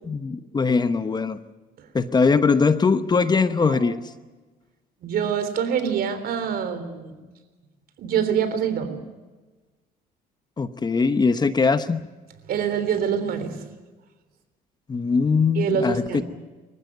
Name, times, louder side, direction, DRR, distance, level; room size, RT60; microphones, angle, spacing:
voice 1, 0.1-1.4 1.9-4.0 10.6-12.0 14.9-16.0, left 4 dB, 25° left, 11 dB, 1.0 m, -21 dB
voice 2, 5.0-7.2 8.0-9.0 12.5-13.7 15.6-16.2, right 7 dB, 65° right, 10 dB, 3.5 m, -25 dB
25.0 x 15.0 x 9.4 m, 1.2 s
cardioid pair, 110°, 17 cm